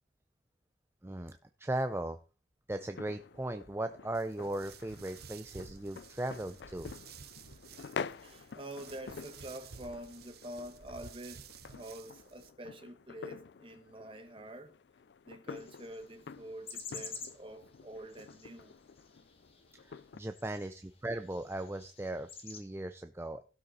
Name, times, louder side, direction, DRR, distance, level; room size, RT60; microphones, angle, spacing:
voice 1, 1.0-2.2 2.7-6.9 19.8-23.4, right 1 dB, 15° right, 0.5 m, -38 dB
sound 1, 2.8-20.2, left 5 dB, 70° left, 0.4 m, -48 dB
sound 2, 4.1-12.5, right 6 dB, 60° right, 0.8 m, -53 dB
voice 2, 8.2-14.7 15.3-18.7, right 1 dB, 30° right, 1.2 m, -47 dB
sound 3, 15.5-22.6, left 5 dB, 35° left, 1.8 m, -50 dB
16.0 x 5.6 x 4.1 m
head